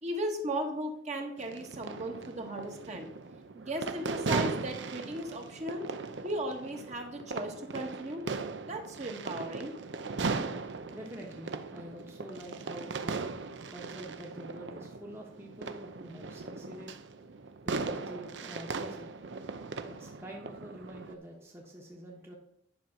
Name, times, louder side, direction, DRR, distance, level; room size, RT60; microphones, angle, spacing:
voice 1, 0.0-3.1 3.5-5.9 6.2-8.2 8.6-9.7, right 1 dB, 40° right, 2 dB, 1.5 m, -36 dB
sound 1, 1.4-21.1, right 4 dB, 90° right, 0.7 m, -38 dB
voice 2, 10.5-22.4, right 1 dB, 15° right, -2 dB, 1.1 m, -47 dB
10.5 x 5.3 x 5.9 m, 0.72 s
head